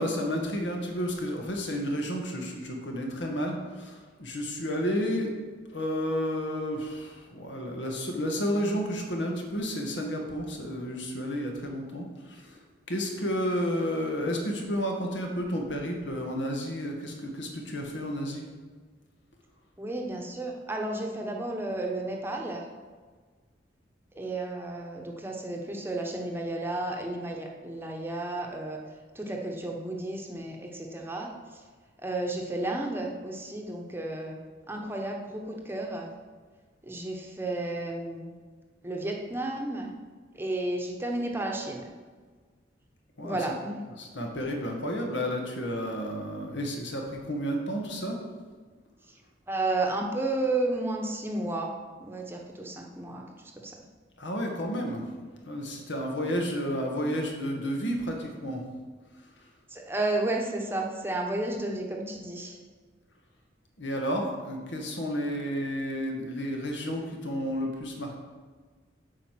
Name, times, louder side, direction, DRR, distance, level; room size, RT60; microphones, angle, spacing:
voice 1, 0.0-5.3 5.7-18.5 43.2-43.4 44.0-48.2 54.2-55.1 55.3-58.6 63.8-68.2, equal, 80° left, 1 dB, 1.9 m, -31 dB
voice 2, 19.8-22.6 24.1-28.8 29.1-31.3 32.0-34.4 34.7-36.1 36.9-38.3 38.8-39.9 40.3-41.9 43.2-43.8 49.5-51.7 52.0-53.7 59.7-62.6, right 2 dB, 10° right, 0 dB, 1.0 m, -32 dB
8.5 x 5.0 x 7.6 m, 1.5 s
head